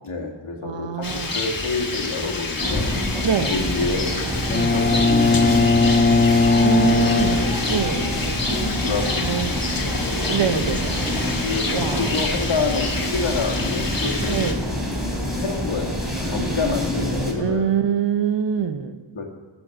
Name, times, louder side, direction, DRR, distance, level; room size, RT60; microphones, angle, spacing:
voice 1, 0.0-2.9 3.5-8.1 8.8-10.2 10.4-10.6 11.4-14.5 15.3-17.7 19.1-19.3, left 3 dB, 75° left, 1 dB, 1.8 m, -29 dB
voice 2, 0.6-1.3 3.2-3.5 4.5-4.7 6.6-7.4 7.7-8.0 8.3-8.4 9.2-9.5 10.3-11.0 11.7-12.1 14.3-14.6 17.4-19.0, right 7 dB, 60° right, 9 dB, 0.9 m, -24 dB
Rain, 1.0-14.5, left 3 dB, 45° left, 1.4 m, -29 dB
sound 1, 2.6-17.3, equal, ahead, 3.2 m, -26 dB
Bowed string instrument, 4.5-8.3, left 3 dB, 25° left, 0.4 m, -19 dB
15.5 x 6.3 x 6.4 m, 1.5 s
wide cardioid pair, 90°, 48 cm